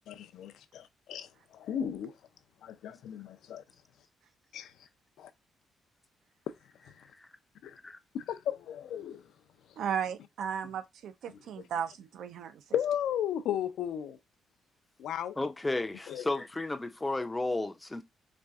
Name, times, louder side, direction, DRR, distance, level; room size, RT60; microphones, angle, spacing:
voice 1, 0.1-1.3 1.5-2.1 2.6-3.6 4.5-4.7 5.2-5.3 7.6-7.8 8.1-9.2 12.7-14.2 15.0-15.4 16.1-16.3, left 9 dB, 80° left, 0.4 m, -34 dB
voice 2, 9.8-12.6, right 8 dB, 80° right, 0.5 m, -35 dB
voice 3, 15.4-18.0, left 2 dB, 15° left, 0.4 m, -33 dB
4.2 x 2.5 x 2.3 m
cardioid pair, 95°, 0 cm